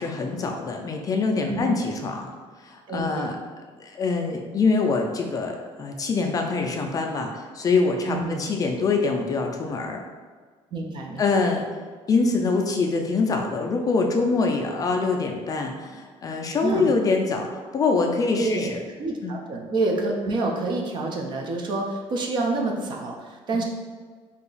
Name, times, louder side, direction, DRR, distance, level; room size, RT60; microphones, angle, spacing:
voice 1, 0.0-2.3 2.6-3.4 3.8-10.0 11.2-11.6 12.1-18.8 19.2-19.3, left 4 dB, 30° left, 2 dB, 0.3 m, -24 dB
voice 2, 1.5-1.8 2.9-3.3 8.1-8.5 10.7-11.4 16.6-17.0 18.4-23.6, right 2 dB, 45° right, 1 dB, 0.5 m, -28 dB
2.8 x 2.4 x 3.9 m, 1.5 s
cardioid pair, 135°, 12 cm